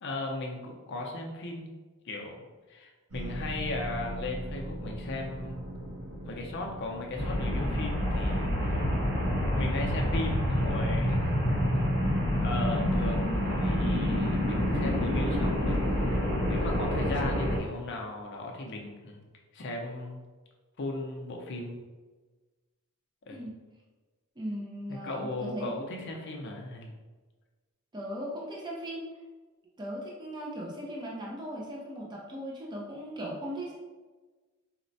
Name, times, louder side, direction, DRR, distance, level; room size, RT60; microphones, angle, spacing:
voice 1, 0.0-1.7 2.1-5.7 6.2-8.8 9.6-11.3 12.4-16.2 16.5-19.2 19.5-20.2 20.8-21.9 23.3-23.5 24.9-26.9, left 2 dB, 50° left, 0 dB, 0.5 m, -37 dB
sound 1, 3.1-9.6, right 1 dB, 75° right, 0.6 m, -41 dB
sound 2, 7.2-17.6, equal, 50° right, 1.0 m, -27 dB
voice 2, 24.4-25.9 27.9-29.0 29.8-33.7, equal, 20° right, -4 dB, 0.5 m, -38 dB
4.2 x 2.0 x 2.6 m, 1.3 s
head